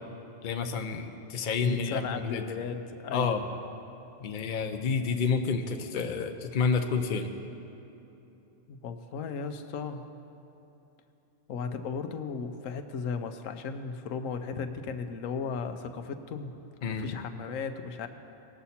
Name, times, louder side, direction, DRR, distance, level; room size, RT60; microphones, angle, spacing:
voice 1, 0.4-2.4 3.1-3.4 4.2-7.3 16.8-17.0, left 5 dB, 50° left, 6 dB, 0.7 m, -29 dB
voice 2, 1.6-3.4 8.7-10.1 11.5-16.5 17.0-18.1, left 5 dB, 85° left, 7 dB, 1.1 m, -35 dB
19.5 x 7.0 x 4.2 m, 2.9 s
omnidirectional pair, 1.3 m